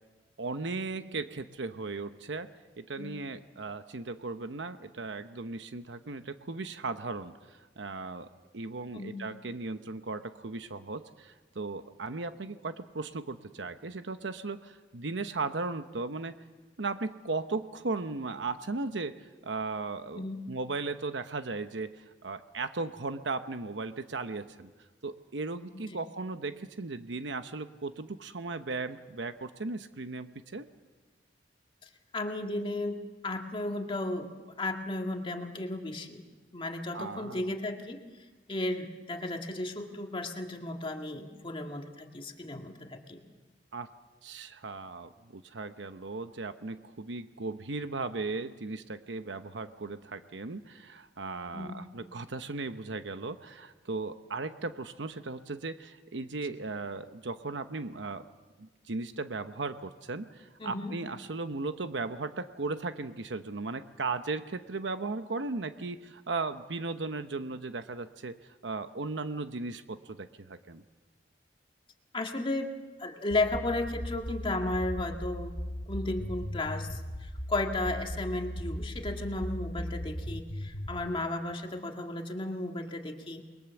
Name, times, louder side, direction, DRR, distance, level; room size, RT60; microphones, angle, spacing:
voice 1, 0.4-2.5 2.8-7.3 7.8-8.3 8.5-16.4 16.8-24.7 25.0-30.7 36.9-37.5 43.7-43.9 44.2-58.2 58.6-68.4 68.6-70.8, right 3 dB, 85° right, 9 dB, 0.9 m, -37 dB
voice 2, 32.1-34.3 34.6-36.2 36.5-38.0 38.5-43.2 51.5-51.9 60.6-60.9 72.1-72.7 73.0-75.5 75.9-83.5, left 2 dB, 30° left, 3 dB, 1.9 m, -34 dB
sound 1, 73.3-81.0, equal, 65° left, 1.9 m, -37 dB
28.5 x 21.5 x 7.1 m, 1.3 s
head